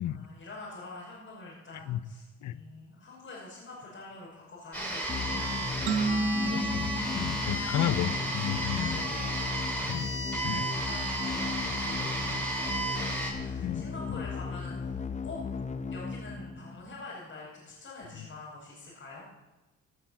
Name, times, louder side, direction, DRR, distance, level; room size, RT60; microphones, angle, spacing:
voice 1, 0.0-6.1 7.0-8.1 8.9-9.4 9.7-15.4 15.9-19.3, left 3 dB, 45° left, -7 dB, 5.7 m, -46 dB
sound 1, 4.7-13.3, right 2 dB, 5° left, 6.5 m, -33 dB
sound 2, 5.1-17.0, left 5 dB, 25° left, 0.8 m, -36 dB
sound 3, 5.9-8.5, right 3 dB, 85° right, 1.3 m, -32 dB
voice 2, 6.5-6.9 7.1-9.0 9.9-10.1 10.4-10.7 13.5-13.9, left 12 dB, 70° left, 16 dB, 0.7 m, -32 dB
17.0 x 7.8 x 7.3 m, 1.1 s
cardioid pair, 90°, 30 cm